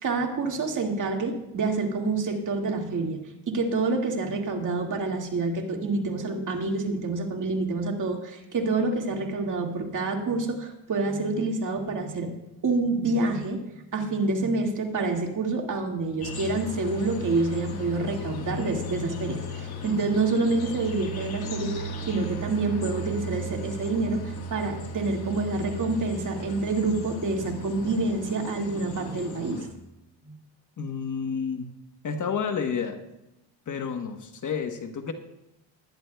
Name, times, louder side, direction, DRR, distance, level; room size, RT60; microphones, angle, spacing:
voice 1, 0.0-3.2 3.5-12.3 12.6-29.7 30.2-30.3, right 3 dB, 45° right, 2 dB, 2.0 m, -27 dB
sound 1, 16.2-29.7, equal, 60° left, 1.8 m, -36 dB
voice 2, 30.8-31.7 32.0-33.0 33.7-35.1, left 6 dB, 45° left, 7 dB, 1.1 m, -30 dB
19.5 x 10.5 x 2.3 m, 0.91 s
cardioid pair, 105°, 43 cm